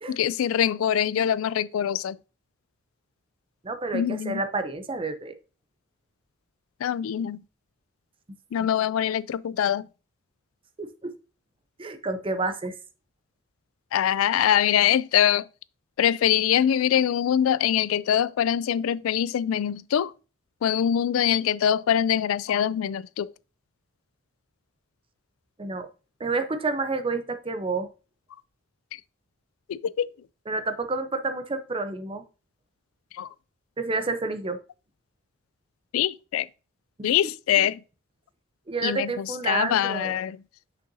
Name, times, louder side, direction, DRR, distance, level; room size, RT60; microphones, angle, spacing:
voice 1, 0.1-2.2 3.9-4.4 6.8-7.4 8.5-9.9 13.9-15.4 16.0-20.1 20.6-23.3 29.7-30.1 33.2-33.3 35.9-36.5 37.0-37.8 38.8-40.4, left 9 dB, 80° left, 0.3 m, -23 dB
voice 2, 3.6-5.3 8.6-8.7 10.8-11.1 11.8-12.7 25.6-25.9 26.2-27.9 30.5-32.2 33.8-34.6 37.2-37.3 37.6-37.7 38.7-40.2, right 3 dB, 25° right, 0.6 m, -29 dB
6.3 x 5.5 x 2.7 m
head